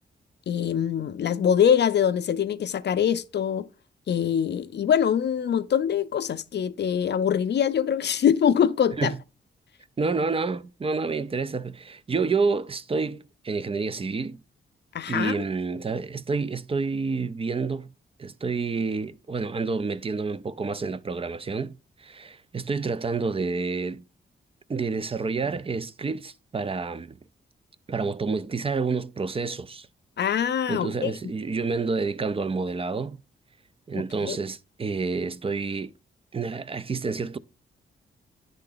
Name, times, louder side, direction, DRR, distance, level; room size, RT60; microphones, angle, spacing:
voice 1, 0.5-3.7 4.1-9.1 14.9-15.4 30.2-31.1 33.9-34.4, left 8 dB, 60° left, 0.5 m, -24 dB
voice 2, 10.0-14.4 15.1-17.9 18.2-21.7 22.0-24.0 24.7-27.2 27.9-29.9 30.7-33.2 33.9-35.9 36.3-37.4, right 4 dB, 30° right, 0.4 m, -29 dB
9.8 x 3.8 x 3.8 m
cardioid pair, 75°, 20 cm